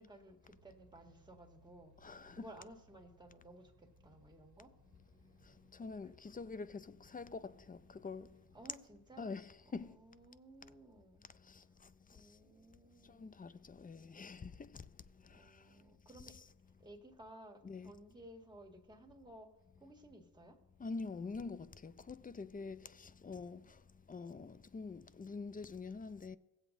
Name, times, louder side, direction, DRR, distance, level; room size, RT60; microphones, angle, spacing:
voice 1, 0.0-1.9 2.3-4.7 6.0-6.1 8.5-9.3 9.7-11.2 12.1-13.3 15.3-16.3 16.8-19.5 19.8-20.6, right 1 dB, 10° right, 1.8 m, -57 dB
sound 1, 0.5-10.4, right 2 dB, 65° right, 1.1 m, -69 dB
voice 2, 2.0-2.5 5.4-8.4 9.2-10.0 11.4-12.3 13.0-14.8 15.1-15.7 16.1-16.5 17.6-18.0 20.8-23.8 24.1-26.4, left 4 dB, 20° left, 0.4 m, -46 dB
17.0 x 7.9 x 2.6 m
cardioid pair, 75°, 41 cm